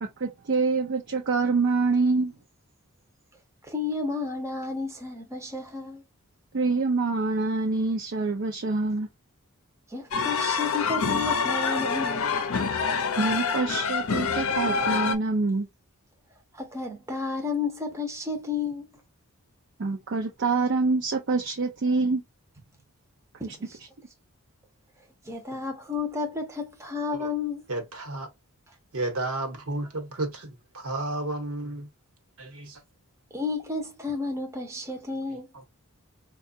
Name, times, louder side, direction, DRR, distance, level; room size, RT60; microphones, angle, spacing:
voice 1, 0.0-2.3 6.5-9.1 13.2-15.7 19.8-22.2 23.4-23.6, right 3 dB, 55° right, 0.5 m, -26 dB
voice 2, 3.7-6.0 9.9-12.4 16.5-18.9 23.4-23.8 25.3-27.6 33.3-35.5, left 4 dB, 15° right, 0.7 m, -32 dB
sound 1, 10.1-15.2, left 5 dB, 65° left, 0.6 m, -26 dB
voice 3, 27.7-28.3 28.9-31.9 32.4-32.8 35.5-35.6, right 2 dB, 70° right, 1.1 m, -32 dB
4.6 x 2.3 x 2.7 m
head